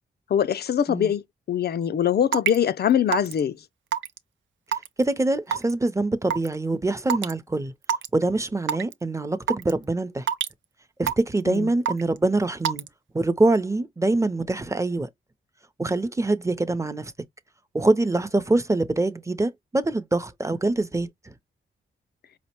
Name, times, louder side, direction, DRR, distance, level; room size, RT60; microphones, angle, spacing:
voice 1, 0.3-3.6 11.5-11.7, left 9 dB, 55° left, 0.4 m, -23 dB
Raindrop / Water tap faucet / Drip, 2.3-2.6 3.1-3.4 3.9-4.2 4.7-5.0 5.5-5.7 6.3-6.5 7.1-7.3 7.8-8.1 8.7-8.9 9.5-9.7 10.3-10.5 11.1-11.4 11.9-12.2 12.6-12.9, right 8 dB, 80° right, 0.5 m, -25 dB
voice 2, 5.0-7.7 8.1-10.3 11.0-12.8 13.1-15.1 15.8-17.1 17.7-21.3, right 2 dB, 15° right, 0.6 m, -24 dB
4.9 x 2.0 x 2.9 m
cardioid pair, 75°, 19 cm